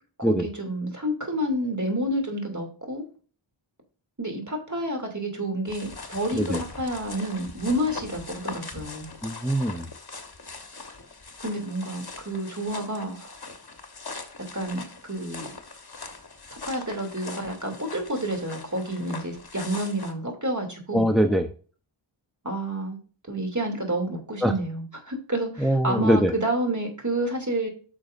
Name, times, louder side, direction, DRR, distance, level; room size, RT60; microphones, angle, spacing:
voice 1, 0.2-3.1 4.2-9.1 11.4-13.3 14.5-14.8 15.1-15.5 16.5-21.1 22.4-23.0 23.3-27.7, right 1 dB, 35° right, 3 dB, 2.8 m, -29 dB
sound 1, 5.7-20.1, left 3 dB, 50° left, 1.3 m, -41 dB
voice 2, 9.2-9.9 20.9-21.5 24.4-24.5 25.6-26.3, equal, ahead, 6 dB, 0.7 m, -22 dB
9.3 x 6.2 x 2.6 m, 0.39 s
wide cardioid pair, 45°, 49 cm